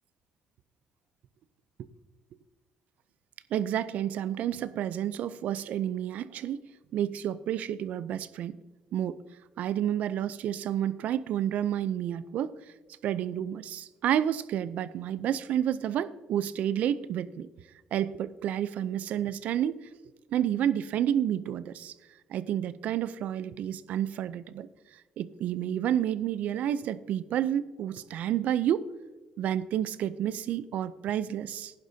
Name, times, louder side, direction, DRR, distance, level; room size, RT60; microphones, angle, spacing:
voice 1, 3.5-6.7 6.9-8.6 8.9-9.2 9.6-12.5 13.0-17.5 17.9-19.8 20.3-21.9 22.3-24.7 25.2-28.9 29.4-31.7, right 10 dB, 70° right, 16 dB, 0.5 m, -30 dB
15.5 x 10.5 x 2.8 m, 1.2 s
supercardioid pair, 65°, 3 cm